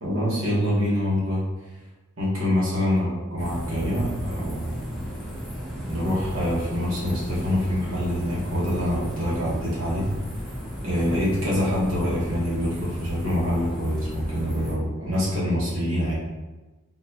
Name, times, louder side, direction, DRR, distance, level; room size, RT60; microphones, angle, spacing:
voice 1, 0.0-1.4 2.2-4.8 5.9-10.1 10.8-16.1, equal, 65° right, -7 dB, 1.2 m, -25 dB
sound 1, 3.4-14.7, equal, ahead, 0.8 m, -34 dB
3.9 x 2.2 x 2.7 m, 1.2 s
head